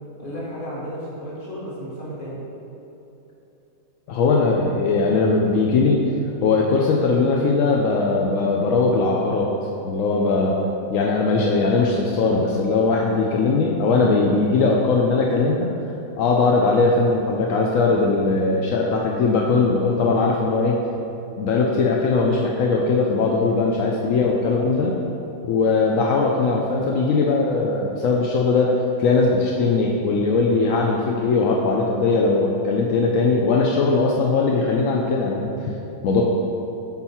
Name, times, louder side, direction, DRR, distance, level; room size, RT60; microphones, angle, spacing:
voice 1, 0.2-2.4, equal, 30° left, -7 dB, 1.6 m, -33 dB
voice 2, 4.1-6.0 6.4-9.5 9.8-10.6 10.9-15.7 16.2-20.8 21.4-24.9 25.4-35.7 36.0-36.2, left 3 dB, 70° left, -1 dB, 0.8 m, -20 dB
7.9 x 4.0 x 4.3 m, 3.0 s
omnidirectional pair, 1.9 m